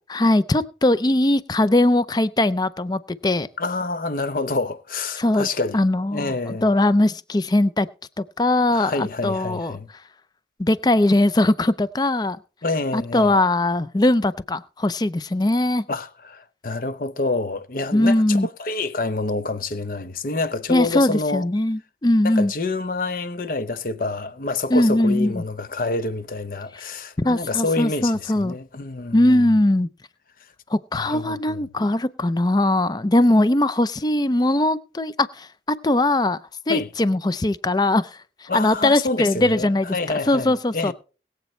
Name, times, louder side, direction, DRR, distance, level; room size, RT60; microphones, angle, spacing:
voice 1, 0.0-3.5 5.2-5.5 5.7-7.9 8.4-9.8 10.6-12.4 12.9-15.8 17.9-18.5 20.7-22.5 24.7-25.4 27.2-28.6 29.1-29.9 30.7-35.5 35.8-36.4 36.7-38.1 38.4-39.9 40.3-40.9, left 1 dB, 25° left, 0.5 m, -20 dB
voice 2, 3.6-5.8 6.1-6.7 8.7-9.9 12.6-13.4 15.9-21.5 22.2-29.6 30.9-31.6 36.7-36.9 38.5-40.9, left 3 dB, 50° left, 0.8 m, -27 dB
21.5 x 8.1 x 3.2 m
head